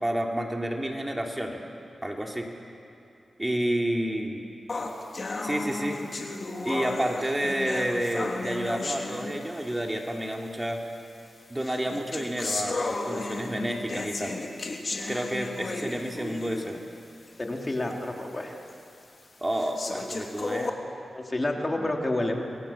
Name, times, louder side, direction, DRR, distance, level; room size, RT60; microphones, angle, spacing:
voice 1, 0.0-1.6 2.0-2.5 3.4-4.4 5.4-6.0 6.6-10.8 11.5-14.4 15.1-16.8 19.4-20.7, right 1 dB, 20° right, 1 dB, 3.4 m, -30 dB
sound 1, 4.7-9.8 10.7-10.8 11.6-16.9 17.3-17.4 17.9-18.0 18.7-18.8 19.5-20.7, left 3 dB, 55° left, 3.1 m, -34 dB
voice 2, 17.4-18.6 21.1-22.4, left 1 dB, 30° left, 1 dB, 3.6 m, -29 dB
27.5 x 21.0 x 7.5 m, 2.6 s
cardioid pair, 40°, 0 cm